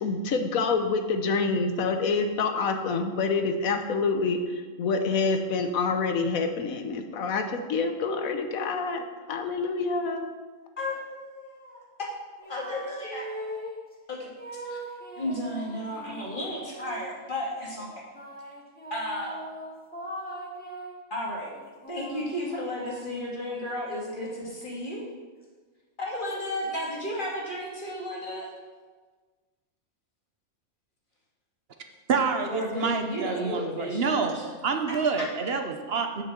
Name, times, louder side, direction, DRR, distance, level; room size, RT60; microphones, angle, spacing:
voice 1, 0.0-9.0 9.3-10.3, left 4 dB, 75° left, 6 dB, 1.3 m, -27 dB
voice 2, 10.8-12.1 12.4-13.6 14.1-14.8 15.2-17.9 18.9-19.5 21.1-21.5 21.9-25.0 26.0-28.5 32.5-34.5 34.9-35.3, left 1 dB, 35° left, -3 dB, 2.3 m, -34 dB
sound 1, 12.4-13.8 14.4-17.3 18.1-21.0 21.5-25.2, right 1 dB, 5° left, 1.4 m, -41 dB
voice 3, 32.1-34.3 34.6-36.2, right 5 dB, 50° right, 5 dB, 0.9 m, -27 dB
7.5 x 6.3 x 7.0 m, 1.4 s
omnidirectional pair, 1.5 m